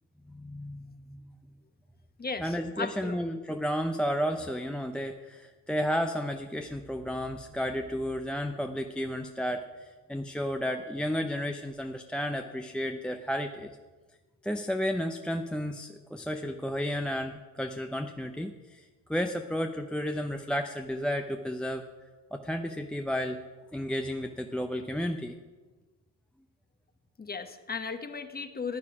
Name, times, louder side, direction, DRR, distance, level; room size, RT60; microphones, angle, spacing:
voice 1, 0.3-1.3 2.4-13.7 14.4-21.8 22.3-23.4 23.7-25.3, equal, ahead, 4 dB, 0.7 m, -32 dB
voice 2, 2.2-3.2 27.2-28.8, left 5 dB, 20° left, 9 dB, 1.2 m, -36 dB
15.0 x 9.5 x 4.9 m, 1.3 s
hypercardioid pair, 75°, 48 cm